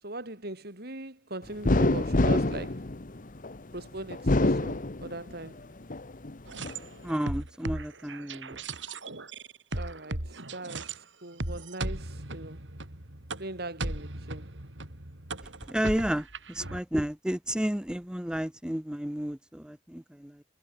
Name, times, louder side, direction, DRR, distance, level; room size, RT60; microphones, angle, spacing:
voice 1, 0.0-2.9 3.7-5.7 9.7-12.7 13.4-14.7, right 2 dB, 60° right, 6.0 m, -40 dB
sound 1, 1.6-3.6 4.1-5.4 5.9-6.8, left 2 dB, 45° left, 1.2 m, -26 dB
sound 2, 6.5-11.0 11.4-16.8, right 2 dB, 85° right, 4.0 m, -37 dB
voice 2, 7.0-8.6 15.7-20.4, equal, 5° right, 0.6 m, -32 dB
head